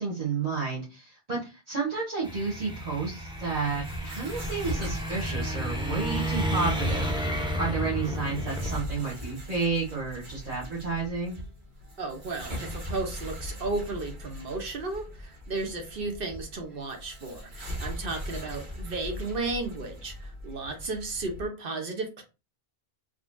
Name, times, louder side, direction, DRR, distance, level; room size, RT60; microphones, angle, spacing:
voice 1, 0.0-7.3 7.6-11.4, right 4 dB, 40° right, -7 dB, 1.2 m, -31 dB
sound 1, 2.2-8.8, equal, 5° right, 0.7 m, -31 dB
sound 2, 3.3-21.5, equal, 85° right, 1.8 m, -40 dB
voice 2, 12.0-22.2, right 3 dB, 65° right, 4 dB, 1.0 m, -34 dB
3.9 x 3.0 x 2.5 m, 0.29 s
omnidirectional pair, 1.0 m